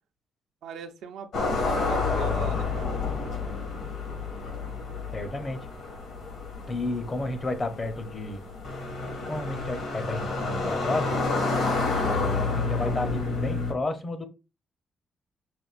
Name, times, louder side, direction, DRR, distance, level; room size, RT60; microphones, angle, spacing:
voice 1, 0.6-3.0, right 6 dB, 85° right, 7 dB, 0.6 m, -40 dB
sound 1, 1.3-13.7, left 3 dB, 75° left, 1.9 m, -29 dB
voice 2, 5.1-5.7 6.7-8.4 9.3-11.1 12.0-14.3, left 2 dB, 30° left, 9 dB, 0.7 m, -32 dB
5.9 x 2.5 x 2.4 m, 0.29 s
cardioid pair, 100°, 0 cm